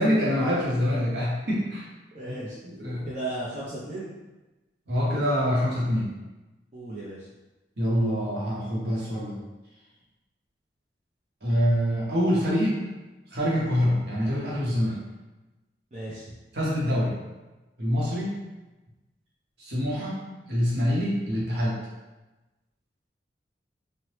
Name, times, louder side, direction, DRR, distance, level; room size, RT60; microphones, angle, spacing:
voice 1, 0.0-1.8 2.6-3.1 4.9-6.1 7.8-9.4 11.4-12.8 13.3-15.0 16.5-17.2 17.8-18.4 19.6-20.2 20.5-21.8, equal, 65° right, -6 dB, 0.9 m, -25 dB
voice 2, 2.1-2.6 3.0-4.1 6.7-7.3 15.9-16.3, right 2 dB, 35° right, -8 dB, 0.5 m, -35 dB
3.2 x 2.1 x 2.9 m, 1.1 s
head